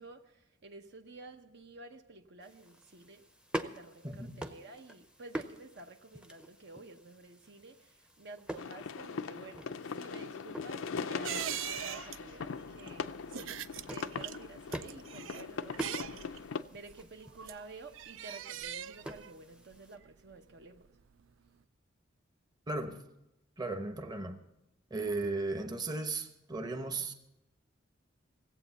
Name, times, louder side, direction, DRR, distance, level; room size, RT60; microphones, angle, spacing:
voice 1, 0.0-3.2 3.5-20.9, right 3 dB, 60° right, 6 dB, 0.9 m, -51 dB
sound 1, 2.4-20.0, right 1 dB, 5° right, 0.6 m, -47 dB
voice 2, 4.0-4.4 22.7-23.1 23.6-24.4 24.9-27.1, right 3 dB, 20° right, 6 dB, 0.9 m, -36 dB
sound 2, 8.6-16.6, left 5 dB, 90° left, 0.5 m, -40 dB
sound 3, 11.2-21.2 21.5-21.6, right 10 dB, 80° right, 0.4 m, -43 dB
17.0 x 8.2 x 7.0 m, 0.87 s
head